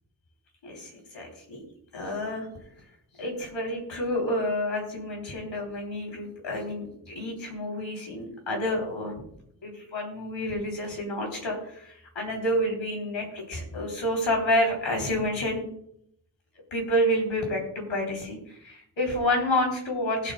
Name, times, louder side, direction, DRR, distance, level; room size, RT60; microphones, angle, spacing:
voice 1, 0.6-1.6 1.9-2.5 3.2-9.3 9.6-15.6 16.7-20.3, left 1 dB, 85° left, 1 dB, 3.3 m, -29 dB
20.0 x 8.6 x 2.2 m, 0.72 s
wide cardioid pair, 105°, 45 cm